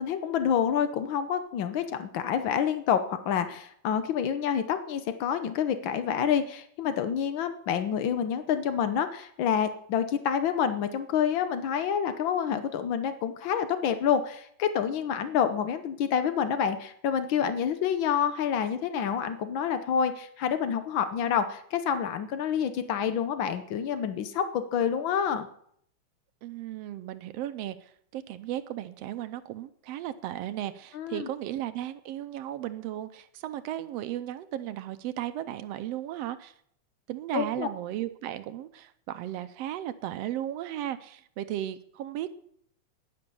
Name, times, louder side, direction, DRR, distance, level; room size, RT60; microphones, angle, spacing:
voice 1, 0.0-25.5 30.9-31.3 37.3-37.7, left 8 dB, 90° left, 10 dB, 1.0 m, -28 dB
voice 2, 26.4-36.5 37.1-42.3, right 12 dB, 75° right, 11 dB, 1.5 m, -35 dB
10.5 x 10.5 x 6.9 m, 0.66 s
omnidirectional pair, 3.3 m